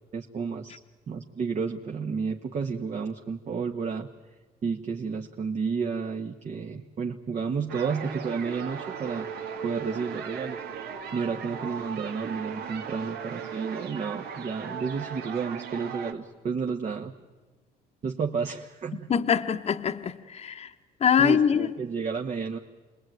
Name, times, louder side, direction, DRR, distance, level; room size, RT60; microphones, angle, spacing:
voice 1, 0.1-0.8 1.1-4.1 4.6-9.3 9.6-10.6 11.1-17.1 18.0-19.1 21.2-22.6, right 5 dB, 45° right, 1.4 m, -31 dB
sound 1, 7.7-16.1, right 7 dB, 70° right, 2.3 m, -37 dB
voice 2, 19.1-20.7 21.0-21.7, left 7 dB, 40° left, 1.1 m, -23 dB
28.0 x 20.5 x 9.2 m
cardioid pair, 110°, 17 cm